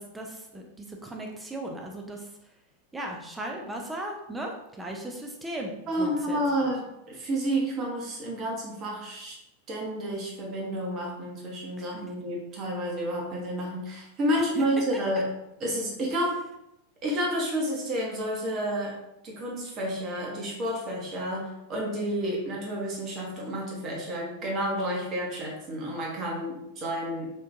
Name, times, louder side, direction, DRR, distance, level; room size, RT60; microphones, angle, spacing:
voice 1, 0.0-2.3 2.9-6.7 11.8-12.0 14.6-14.7, right 1 dB, 10° right, 1 dB, 0.4 m, -37 dB
voice 2, 5.9-9.4 9.7-15.3 15.6-16.4 17.0-19.0 19.2-27.3, equal, 35° right, -2 dB, 1.0 m, -30 dB
3.6 x 2.5 x 2.5 m, 0.85 s
figure-of-eight pair, 90°, 0 cm